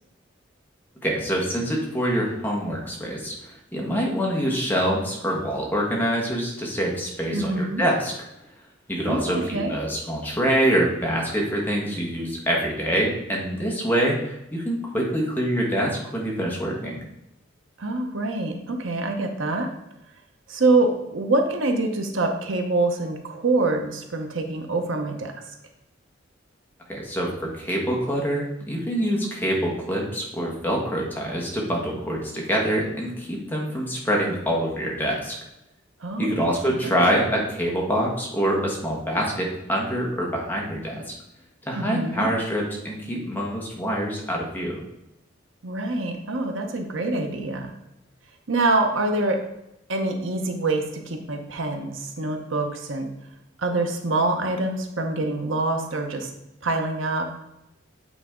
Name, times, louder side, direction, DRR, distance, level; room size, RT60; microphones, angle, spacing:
voice 1, 1.0-8.1 8.9-17.0 26.9-35.3 36.2-41.1 41.6-44.8, equal, 10° left, -2 dB, 1.4 m, -25 dB
voice 2, 7.3-7.8 9.1-9.7 17.8-19.7 20.5-25.3 36.0-36.4 36.7-37.1 41.7-42.3 45.6-47.7 48.5-49.4 49.9-53.1 53.6-56.3 56.6-57.3, right 2 dB, 80° right, 4 dB, 0.9 m, -25 dB
8.2 x 4.1 x 3.7 m, 0.87 s
head